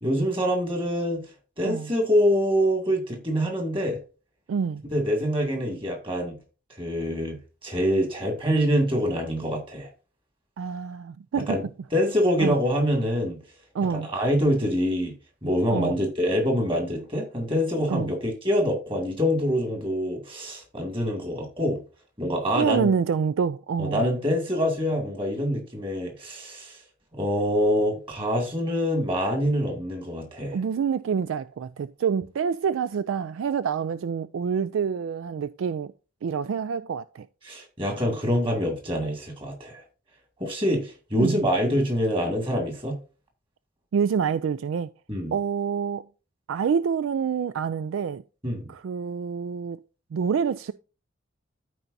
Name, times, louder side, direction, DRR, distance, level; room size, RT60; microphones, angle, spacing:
voice 1, 0.0-1.2 1.6-4.0 4.9-6.4 6.8-7.4 7.6-9.9 11.4-11.6 11.9-13.4 13.9-15.1 15.4-21.8 22.2-22.9 23.8-26.8 27.1-30.6 37.4-39.8 40.4-43.0 45.1-45.3 48.4-48.7, equal, 25° right, 2.2 m, -25 dB
voice 2, 4.5-4.8 10.6-11.6 12.4-12.6 13.7-14.1 15.7-16.0 17.9-18.1 22.5-24.1 30.5-35.9 36.2-37.3 41.2-41.4 43.9-44.9 45.3-46.0 46.5-48.2 48.7-49.8 50.1-50.7, right 6 dB, 85° right, 0.3 m, -27 dB
13.5 x 4.6 x 2.6 m
head